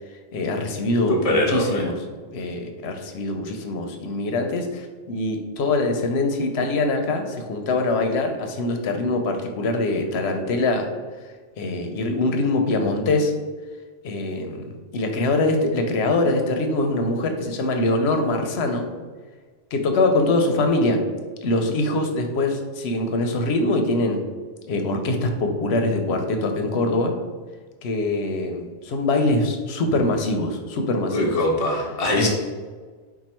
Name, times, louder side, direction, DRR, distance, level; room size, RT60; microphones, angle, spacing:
voice 1, 0.3-2.0 2.3-10.9 11.6-13.3 14.0-14.6 14.9-18.8 19.7-21.0 21.4-24.2 24.7-27.1 27.8-31.4 32.1-32.3, left 2 dB, 80° left, 5 dB, 0.9 m, -23 dB
voice 2, 1.1-1.8 31.1-32.3, left 1 dB, 40° left, -2 dB, 0.8 m, -22 dB
4.7 x 2.3 x 4.2 m, 1.5 s
omnidirectional pair, 1.1 m